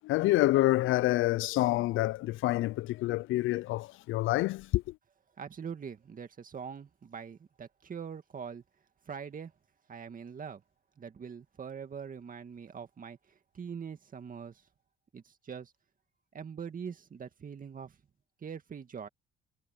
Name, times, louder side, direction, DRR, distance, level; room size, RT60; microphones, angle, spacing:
voice 1, 0.0-5.0, left 17 dB, 80° left, 0.4 m, -27 dB
voice 2, 5.4-8.6 9.1-9.5 9.9-10.6 11.0-14.6 15.1-15.7 16.3-18.0 18.4-19.1, right 6 dB, 45° right, 2.1 m, -43 dB
cardioid pair, 90°, 20 cm